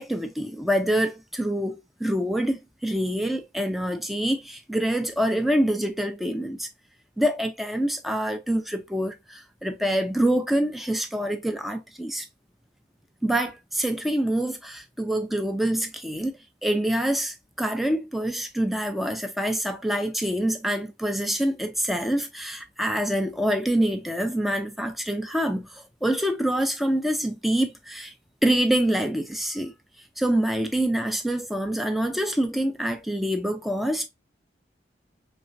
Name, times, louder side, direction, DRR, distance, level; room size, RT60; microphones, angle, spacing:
voice 1, 0.0-6.7 7.2-12.3 13.2-16.4 16.6-28.1 28.4-29.7 30.2-34.1, right 1 dB, ahead, 0.4 m, -26 dB
4.1 x 3.2 x 2.6 m
head